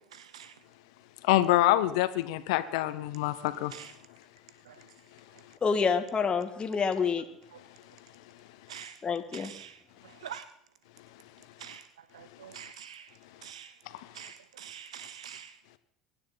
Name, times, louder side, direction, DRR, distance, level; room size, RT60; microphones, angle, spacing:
voice 1, 0.1-0.5 3.7-3.9 4.7-4.8 8.7-9.0 9.3-9.7 10.2-10.4 11.6-11.8 12.1-13.1 13.4-13.7 14.1-15.5, right 9 dB, 85° right, 14 dB, 0.6 m, -45 dB
voice 2, 1.3-3.7, left 15 dB, 70° left, 12 dB, 0.9 m, -25 dB
voice 3, 5.6-7.2 9.0-9.5, left 5 dB, 30° left, 5 dB, 1.7 m, -27 dB
23.0 x 10.0 x 4.0 m, 0.70 s
hypercardioid pair, 75°, 3 cm